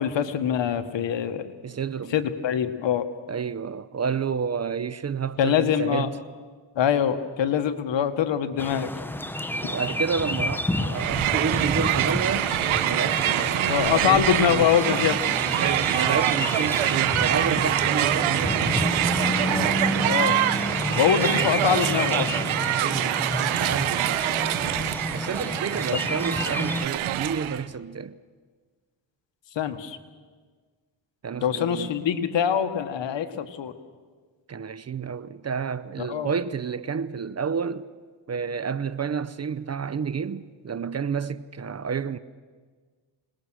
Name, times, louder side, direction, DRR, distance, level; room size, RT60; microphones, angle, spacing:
voice 1, 0.0-1.5 2.1-3.0 5.4-6.1 6.7-8.9 13.6-15.2 20.0-20.4 20.9-22.3 25.9-26.0 29.5-30.0 31.4-33.7 36.0-36.3, left 8 dB, 65° left, 1.6 m, -24 dB
voice 2, 1.6-2.2 3.3-6.2 9.6-14.7 15.6-18.8 21.0-21.1 22.7-24.2 25.1-28.2 31.2-31.9 34.5-37.9 38.3-42.2, right 6 dB, 35° right, 0.7 m, -30 dB
sound 1, 8.6-26.9, left 1 dB, 5° left, 1.0 m, -30 dB
Crowd, 10.9-27.6, right 13 dB, 80° right, 1.0 m, -25 dB
26.5 x 20.0 x 6.3 m
cardioid pair, 90°, 48 cm